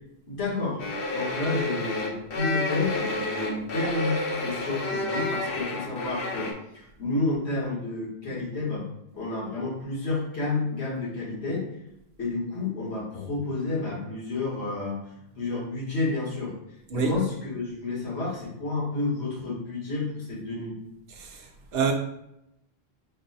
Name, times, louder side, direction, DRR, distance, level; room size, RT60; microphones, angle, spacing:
voice 1, 0.3-0.8 1.1-8.9 9.1-11.6 12.2-15.0 15.4-16.5 16.9-20.8, left 3 dB, 90° left, 1.8 m, -30 dB
sound 1, 0.8-6.5, left 2 dB, 65° left, 0.9 m, -30 dB
voice 2, 16.9-17.2 21.2-21.4 21.7-21.9, right 5 dB, 70° right, 0.8 m, -26 dB
5.2 x 2.1 x 3.9 m
omnidirectional pair, 1.1 m